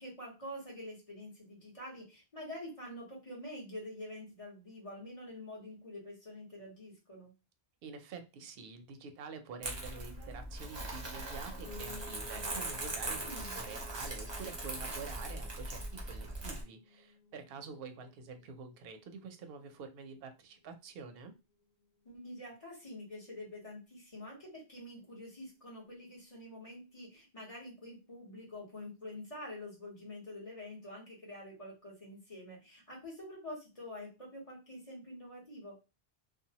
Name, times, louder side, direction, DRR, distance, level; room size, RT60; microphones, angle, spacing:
voice 1, 0.0-7.3 13.2-13.6 22.0-35.8, left 1 dB, 30° left, -4 dB, 1.3 m, -47 dB
voice 2, 7.8-21.3, right 5 dB, 65° right, 7 dB, 0.7 m, -47 dB
Crumpling crinkling, 9.6-16.6, right 2 dB, 30° right, 0.6 m, -40 dB
Piano, 11.6-20.7 21.1-22.3 22.6-22.7 22.9-23.0 23.3-23.4 23.9-24.0, left 4 dB, 50° left, 0.5 m, -56 dB
2.7 x 2.3 x 2.8 m, 0.28 s
omnidirectional pair, 1.1 m